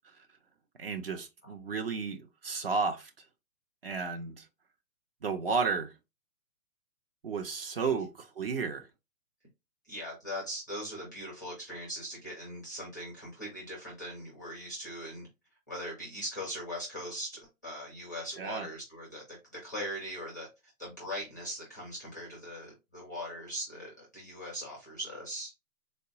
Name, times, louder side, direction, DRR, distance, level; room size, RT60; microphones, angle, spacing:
voice 1, 0.8-3.1 3.8-4.4 5.2-5.9 7.2-8.8 18.4-18.7, right 5 dB, 40° right, 0.5 m, -32 dB
voice 2, 9.9-15.3 15.7-20.5 20.8-25.5, equal, 15° left, 0.4 m, -40 dB
3.9 x 2.1 x 2.8 m
hypercardioid pair, 150°, 44 cm